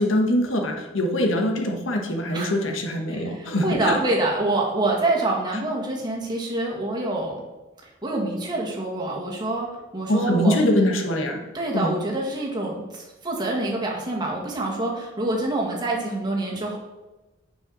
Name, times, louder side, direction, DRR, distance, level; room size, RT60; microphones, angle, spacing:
voice 1, 0.0-4.0 10.1-11.4 11.7-11.9, left 1 dB, 85° left, 2 dB, 1.3 m, -23 dB
voice 2, 3.1-7.3 7.8-9.7 9.9-10.6 11.5-16.8, right 2 dB, 20° right, -2 dB, 1.8 m, -26 dB
6.7 x 5.6 x 6.1 m, 1.1 s
head